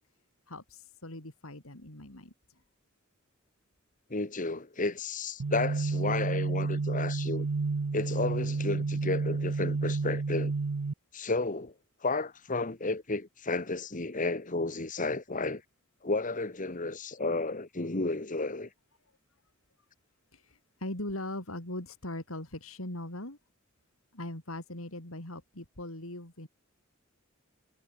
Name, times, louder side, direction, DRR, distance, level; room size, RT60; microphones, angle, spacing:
voice 1, 0.5-2.3 20.3-23.4 24.1-26.5, left 1 dB, 75° left, 5.0 m, -40 dB
voice 2, 4.1-7.5 7.9-10.5 11.1-11.7 12.0-15.6 16.0-18.7, left 3 dB, 40° left, 1.6 m, -32 dB
sound 1, 5.4-10.9, right 4 dB, 85° right, 0.7 m, -30 dB
head